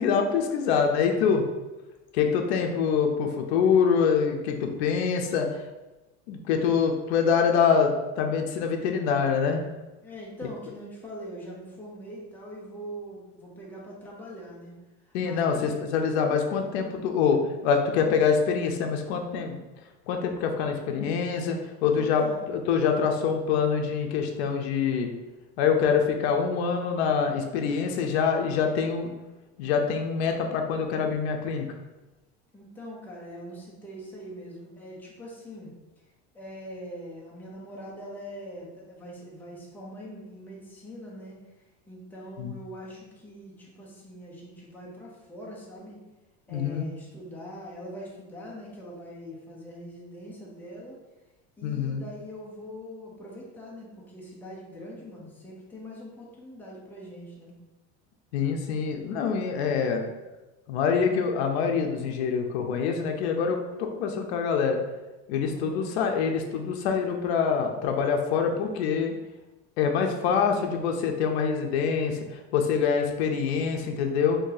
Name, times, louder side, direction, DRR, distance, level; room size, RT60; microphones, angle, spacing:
voice 1, 0.0-1.5 2.1-5.5 6.3-9.6 15.1-19.6 20.1-22.2 22.5-25.1 25.6-29.1 29.6-31.7 42.4-42.5 46.5-46.9 51.6-52.0 58.3-60.0 60.7-64.8 65.3-69.1 69.8-72.2 72.5-74.4, left 6 dB, 85° left, 3 dB, 0.5 m, -25 dB
voice 2, 10.0-14.7 15.2-15.8 22.0-22.6 32.5-35.7 36.3-41.4 41.9-46.0 46.5-51.0 51.6-57.5 65.5-66.0, equal, 5° left, -4 dB, 0.6 m, -42 dB
2.8 x 2.7 x 3.8 m, 1.1 s
cardioid pair, 155°, 32 cm